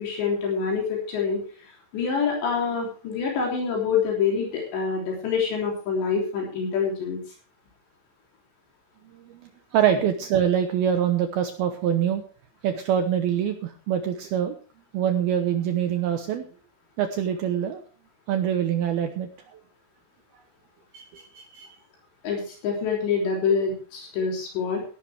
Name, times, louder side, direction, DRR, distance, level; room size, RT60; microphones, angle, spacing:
voice 1, 0.0-1.4 1.9-7.2 22.2-24.8, left 5 dB, 65° left, -1 dB, 5.4 m, -26 dB
voice 2, 9.7-12.2 12.6-14.6 14.9-16.4 17.0-17.8 18.3-19.6 20.9-21.7, right 9 dB, 70° right, 7 dB, 2.5 m, -25 dB
17.5 x 11.5 x 3.4 m, 0.38 s
omnidirectional pair, 5.4 m